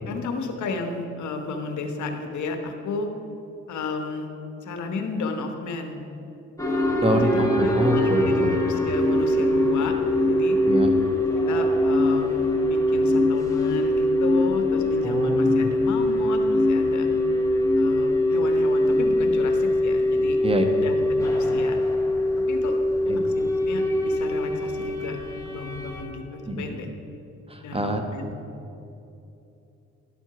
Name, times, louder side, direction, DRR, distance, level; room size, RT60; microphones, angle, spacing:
voice 1, 0.1-3.1 3.7-4.3 4.6-6.0 7.0-10.0 10.3-10.6 11.5-17.1 17.8-20.4 20.7-21.8 22.5-22.8 23.1-25.2 25.4-26.9 27.6-28.4, left 4 dB, 70° left, 4 dB, 1.0 m, -33 dB
sound 1, 6.6-26.0, left 1 dB, 10° left, 1.7 m, -22 dB
voice 2, 7.0-8.6 10.6-10.9 15.0-15.7 20.4-20.6 23.0-23.2 26.5-26.7 27.5-28.0, equal, 20° right, 5 dB, 1.1 m, -26 dB
12.0 x 4.5 x 5.8 m, 2.8 s
supercardioid pair, 55°, 30 cm